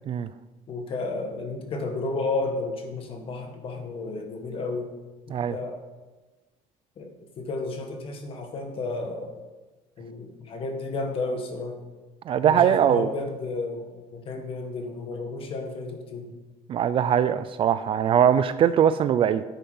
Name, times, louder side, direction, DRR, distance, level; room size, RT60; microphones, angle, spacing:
voice 1, 0.7-4.9 5.3-5.8 7.0-7.1 7.4-9.3 10.0-11.8 12.4-16.3, left 3 dB, 40° left, 5 dB, 1.8 m, -32 dB
voice 2, 12.3-13.1 16.7-19.4, right 9 dB, 40° right, 13 dB, 0.4 m, -21 dB
10.5 x 8.5 x 5.6 m, 1.2 s
cardioid pair, 145°, 14 cm